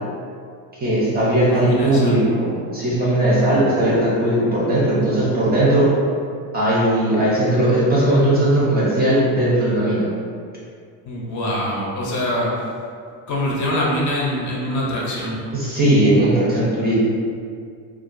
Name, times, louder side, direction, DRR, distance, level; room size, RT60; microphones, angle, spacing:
voice 1, 0.8-5.9 6.5-10.0 15.5-16.9, right 1 dB, 25° right, -7 dB, 0.4 m, -18 dB
voice 2, 1.5-2.2 11.1-12.7 13.3-15.4, left 1 dB, 45° left, -3 dB, 0.5 m, -24 dB
2.3 x 2.2 x 2.4 m, 2.2 s
cardioid pair, 135°, 41 cm